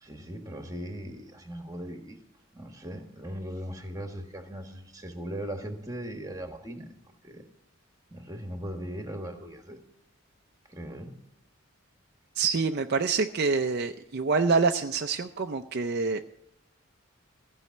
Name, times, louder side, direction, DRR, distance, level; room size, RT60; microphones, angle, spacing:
voice 1, 0.0-2.2 2.5-6.9 7.2-7.4 8.1-9.8 10.7-11.1, equal, 15° right, 5 dB, 1.4 m, -39 dB
voice 2, 12.4-16.2, right 4 dB, 55° right, 6 dB, 0.5 m, -26 dB
15.0 x 5.5 x 9.3 m, 0.86 s
head